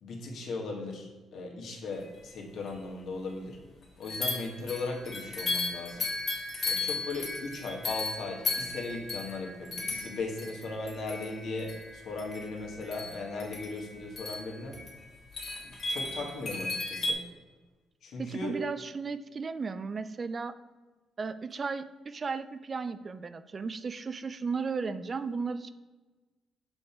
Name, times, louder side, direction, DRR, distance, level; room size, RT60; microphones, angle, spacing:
voice 1, 0.0-3.6 4.0-6.1 6.6-14.8 15.6-17.2 18.0-18.6, left 3 dB, 70° left, 0 dB, 1.6 m, -37 dB
sound 1, 2.3-2.4 2.7-2.8 4.0-17.1, left 3 dB, 50° left, 1.6 m, -36 dB
voice 2, 18.2-20.6 21.2-25.7, right 4 dB, 35° right, 12 dB, 0.3 m, -35 dB
5.7 x 5.3 x 4.3 m, 1.3 s
cardioid pair, 90°, 0 cm